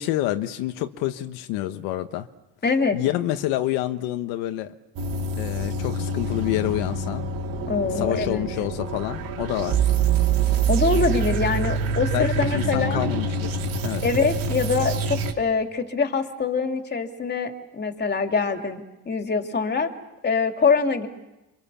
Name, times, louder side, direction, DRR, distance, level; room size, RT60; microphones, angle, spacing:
voice 1, 0.0-2.3 2.9-4.7 5.4-7.3 7.9-9.8 12.1-14.0, left 14 dB, 85° left, 7 dB, 1.4 m, -28 dB
voice 2, 2.6-3.0 7.7-8.5 10.7-13.1 14.0-19.9 20.2-21.1, left 5 dB, 25° left, 4 dB, 3.2 m, -24 dB
sound 1, 5.0-15.3, right 5 dB, 65° right, 2.9 m, -25 dB
28.0 x 26.0 x 7.2 m, 0.97 s
cardioid pair, 100°, 37 cm